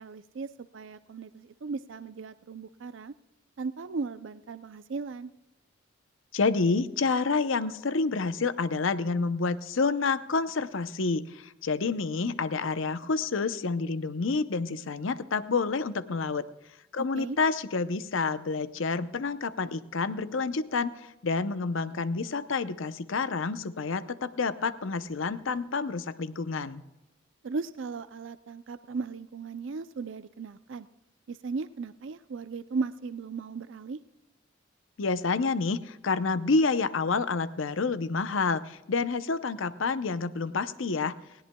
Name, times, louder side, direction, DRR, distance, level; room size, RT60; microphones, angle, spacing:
voice 1, 0.0-3.1 3.6-5.3 17.1-17.4 27.4-30.9 31.3-34.0, right 4 dB, 65° right, 12 dB, 0.4 m, -36 dB
voice 2, 6.3-16.5 16.9-26.8 35.0-41.1, left 4 dB, 75° left, 13 dB, 0.6 m, -28 dB
19.0 x 17.0 x 2.2 m, 0.97 s
head